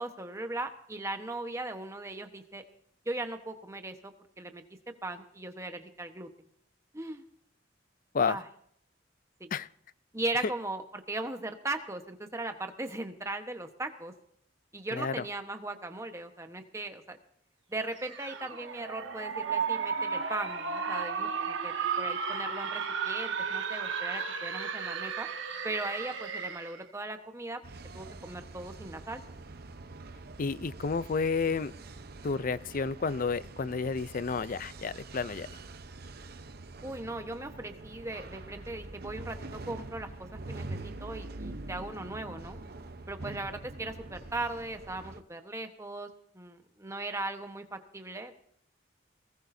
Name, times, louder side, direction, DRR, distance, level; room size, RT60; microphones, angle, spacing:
voice 1, 0.0-2.6 3.0-4.6 5.0-6.3 6.9-7.2 8.3-8.4 9.4-9.5 10.1-14.1 14.7-17.2 17.7-25.3 25.6-27.6 27.9-29.2 36.8-42.6 43.1-46.1 46.3-48.3, right 2 dB, 15° right, 6 dB, 1.2 m, -38 dB
voice 2, 14.9-15.2 30.4-31.7 32.2-35.6, left 5 dB, 45° left, 17 dB, 0.5 m, -31 dB
sound 1, 18.0-26.8, right 6 dB, 75° right, 1.5 m, -34 dB
sound 2, 27.6-45.2, right 2 dB, 55° right, 0.9 m, -45 dB
20.5 x 19.0 x 2.7 m, 0.69 s
head